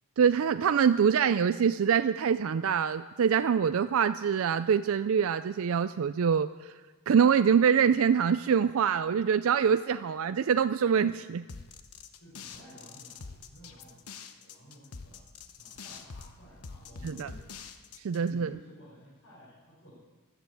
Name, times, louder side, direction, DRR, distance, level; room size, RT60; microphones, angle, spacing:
voice 1, 0.2-6.7 7.1-11.4 17.0-17.3 18.0-18.5, right 7 dB, 65° right, 12 dB, 0.4 m, -25 dB
sound 1, 11.5-18.3, left 5 dB, 85° left, 1.0 m, -45 dB
voice 2, 12.2-15.3 15.6-17.4 18.2-19.9, right 1 dB, 60° left, -8 dB, 5.4 m, -53 dB
14.0 x 12.0 x 8.3 m, 1.3 s
head